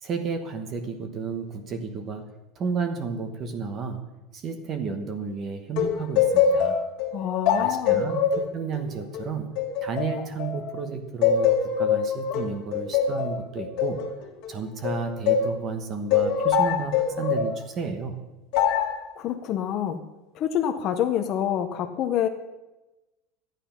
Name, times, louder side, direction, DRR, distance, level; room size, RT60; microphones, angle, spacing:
voice 1, 0.0-4.1 4.3-6.8 7.6-9.5 9.8-11.5 11.8-14.0 14.5-18.2, right 5 dB, 25° right, 6 dB, 1.1 m, -32 dB
sound 1, 5.8-10.8 11.2-15.6 16.1-17.5 18.5-19.0, left 7 dB, 50° left, 1.7 m, -24 dB
voice 2, 7.1-8.1 19.2-20.0 20.3-22.3, left 10 dB, 35° left, 5 dB, 0.7 m, -27 dB
12.5 x 9.1 x 5.8 m, 1.0 s
cardioid pair, 170°, 0 cm